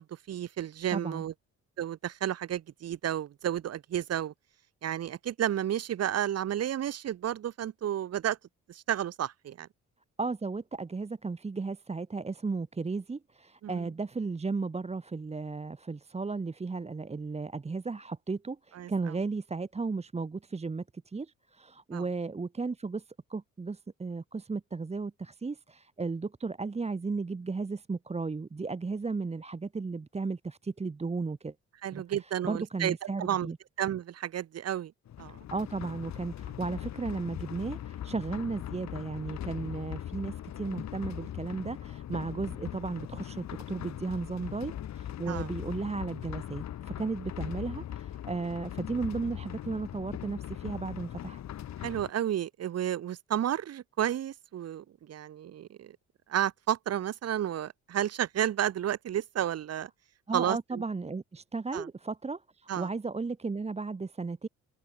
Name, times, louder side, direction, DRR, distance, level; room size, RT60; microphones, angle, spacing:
voice 1, 0.0-1.3 1.8-4.3 4.8-8.4 8.7-9.7 13.6-13.9 18.8-18.9 21.9-22.0 31.8-33.5 33.8-34.9 35.2-35.4 45.3-45.5 51.8-56.0 56.3-59.9 60.3-60.8 61.7-61.9 62.7-62.9, right 10 dB, 55° right, 1.1 m, -32 dB
voice 2, 0.9-1.2 10.2-31.5 31.9-33.6 35.5-51.4 60.3-64.5, right 4 dB, 20° right, 1.2 m, -35 dB
sound 1, 35.1-52.1, left 11 dB, 65° left, 1.7 m, -40 dB
cardioid pair, 90°, 30 cm